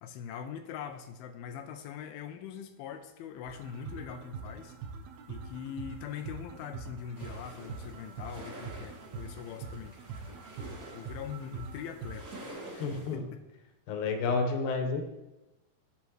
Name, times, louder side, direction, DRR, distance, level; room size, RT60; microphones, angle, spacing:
voice 1, 0.0-4.7 5.3-10.0 10.9-12.3 12.7-13.4, left 8 dB, 90° left, 6 dB, 2.5 m, -42 dB
sound 1, 3.5-12.5, right 5 dB, 85° right, 1.5 m, -44 dB
sound 2, 7.1-13.1, right 1 dB, 30° right, 1.7 m, -48 dB
voice 2, 12.8-13.2 13.9-15.0, left 4 dB, 65° left, 3 dB, 2.4 m, -30 dB
10.5 x 9.5 x 3.2 m, 0.98 s
omnidirectional pair, 4.2 m